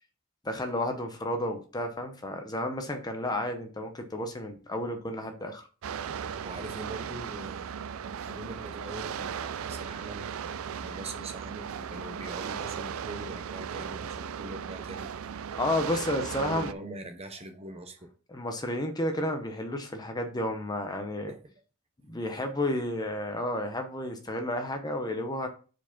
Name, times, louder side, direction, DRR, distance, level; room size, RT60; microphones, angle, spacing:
voice 1, 0.4-5.6 15.6-16.7 18.3-21.3 22.1-25.5, left 1 dB, 20° left, 0.7 m, -31 dB
sound 1, 5.8-16.7, right 7 dB, 70° right, 0.4 m, -37 dB
voice 2, 6.4-10.3 10.7-15.2 15.9-18.1 21.3-21.5, right 1 dB, 30° right, 0.8 m, -43 dB
4.8 x 4.7 x 5.7 m
head